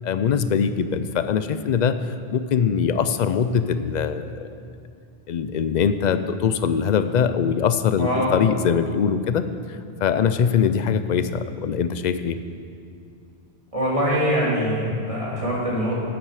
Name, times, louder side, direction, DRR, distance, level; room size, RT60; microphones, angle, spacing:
voice 1, 0.0-2.0 2.3-4.5 5.3-9.4 10.0-12.4, left 7 dB, 55° left, 11 dB, 0.5 m, -22 dB
voice 2, 8.0-8.3 13.7-15.9, equal, 35° right, -6 dB, 2.6 m, -23 dB
12.0 x 8.9 x 4.8 m, 2.5 s
omnidirectional pair, 1.0 m